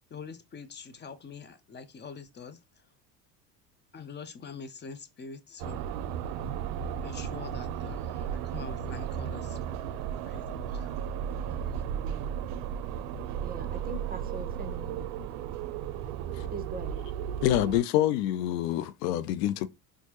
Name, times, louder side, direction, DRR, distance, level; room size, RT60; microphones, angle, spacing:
voice 1, 0.1-2.6 3.9-5.9 7.0-9.6 10.3-11.0 11.7-11.8, left 5 dB, 20° left, 0.6 m, -44 dB
sound 1, 5.6-17.8, right 8 dB, 65° right, 0.6 m, -35 dB
voice 2, 11.5-12.3 13.4-15.1 16.5-17.1, right 3 dB, 20° right, 0.8 m, -43 dB
voice 3, 17.4-19.7, left 13 dB, 80° left, 0.6 m, -26 dB
4.5 x 2.2 x 2.8 m
supercardioid pair, 85°, 48 cm